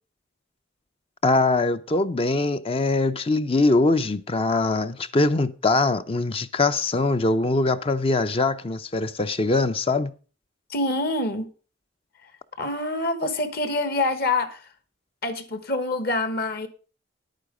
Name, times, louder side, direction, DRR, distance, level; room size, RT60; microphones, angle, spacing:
voice 1, 1.2-10.1, left 3 dB, 30° left, 0.5 m, -22 dB
voice 2, 10.7-11.5 12.6-14.6 15.2-16.7, left 2 dB, 50° left, 1.3 m, -26 dB
10.5 x 9.0 x 5.0 m
head